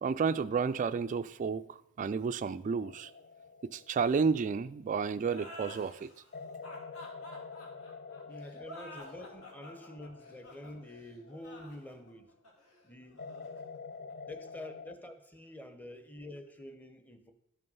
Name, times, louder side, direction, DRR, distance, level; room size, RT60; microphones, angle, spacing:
voice 1, 0.0-3.1 3.6-6.1, right 5 dB, 35° right, 0.3 m, -31 dB
sound 1, 2.7-5.4 6.3-12.1 13.2-15.0, left 4 dB, 40° left, 0.5 m, -48 dB
sound 2, 5.2-14.5, left 1 dB, 75° left, 2.6 m, -51 dB
voice 2, 8.3-12.3 12.8-13.3 14.2-17.3, left 1 dB, 10° left, 0.9 m, -47 dB
11.5 x 5.4 x 5.5 m
head